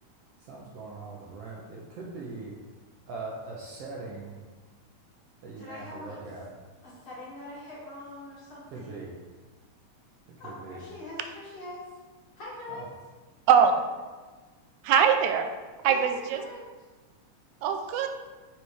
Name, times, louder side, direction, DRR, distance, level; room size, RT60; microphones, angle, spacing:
voice 1, 0.5-2.5 3.1-4.4 5.4-6.5 8.7-9.1 10.4-10.9 12.7-12.9, right 3 dB, 70° right, -3 dB, 1.6 m, -41 dB
voice 2, 5.6-6.2 6.8-9.0 10.4-11.9 12.3-12.9 15.8-16.6, left 2 dB, 45° left, -7 dB, 2.7 m, -42 dB
voice 3, 14.8-15.5 15.8-16.4 17.6-18.1, right 7 dB, 85° right, 6 dB, 2.0 m, -22 dB
6.8 x 3.4 x 4.7 m, 1.3 s
omnidirectional pair, 3.4 m